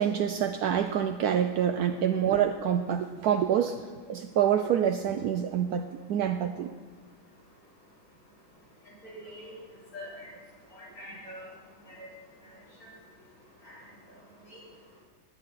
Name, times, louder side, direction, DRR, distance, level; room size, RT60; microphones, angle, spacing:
voice 1, 0.0-6.7, right 9 dB, 75° right, 7 dB, 1.0 m, -27 dB
voice 2, 9.1-9.5 9.9-10.3 10.7-11.5 11.9-12.1 12.8-12.9 13.6-13.8 14.5-14.6, equal, 75° left, -9 dB, 5.3 m, -44 dB
18.0 x 8.3 x 4.1 m, 1.4 s
omnidirectional pair, 1.8 m